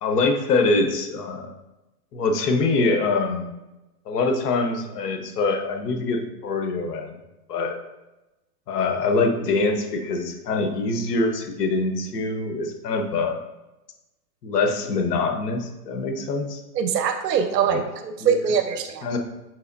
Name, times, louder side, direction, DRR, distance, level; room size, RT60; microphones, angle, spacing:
voice 1, 0.0-1.5 2.1-3.5 4.1-7.1 7.5-7.8 8.7-13.4 14.4-16.6 17.6-17.8 18.2-18.3 19.0-19.2, left 3 dB, 70° left, 4 dB, 0.9 m, -24 dB
voice 2, 16.7-19.1, right 7 dB, 75° right, 7 dB, 0.6 m, -23 dB
5.7 x 2.9 x 2.6 m, 1.0 s
hypercardioid pair, 125°, 50 cm